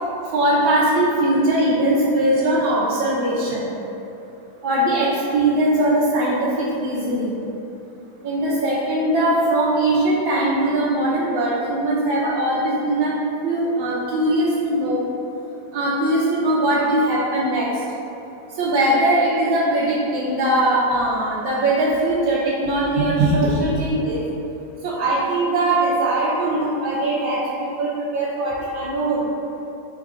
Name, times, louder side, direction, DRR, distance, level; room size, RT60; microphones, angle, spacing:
voice 1, 0.3-3.7 4.6-5.1 5.3-6.3 6.7-7.4 8.2-13.1 13.4-15.0 15.7-17.7 18.6-24.2 24.8-29.2, right 1 dB, 65° right, -10 dB, 1.1 m, -20 dB
4.6 x 2.4 x 4.8 m, 2.8 s
omnidirectional pair, 2.0 m